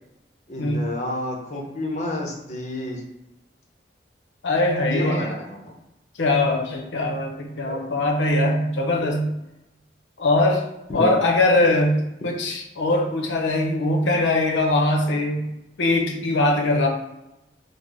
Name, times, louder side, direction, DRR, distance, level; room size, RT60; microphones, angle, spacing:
voice 1, 0.5-3.0 4.9-5.7 7.7-7.8 9.0-9.1 10.9-11.1, left 1 dB, 40° left, 0 dB, 0.6 m, -29 dB
voice 2, 4.4-5.3 6.2-9.3 10.2-10.6 10.9-15.5 15.8-16.9, left 2 dB, 85° left, 2 dB, 0.6 m, -21 dB
3.8 x 2.0 x 3.2 m, 0.93 s
head